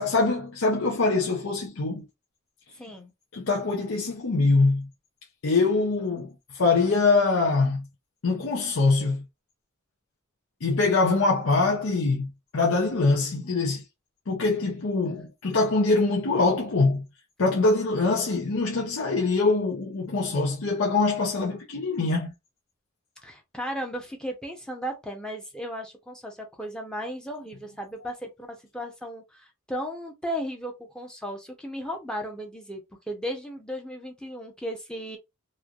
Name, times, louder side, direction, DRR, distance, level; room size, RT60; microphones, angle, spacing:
voice 1, 0.0-2.0 3.3-4.9 5.4-7.9 8.2-9.2 10.6-13.8 14.3-17.0 17.4-22.3, left 3 dB, 80° left, 0.7 m, -23 dB
voice 2, 2.8-3.1 23.2-32.8 33.1-35.2, equal, 5° left, 0.7 m, -35 dB
3.1 x 2.5 x 2.3 m
head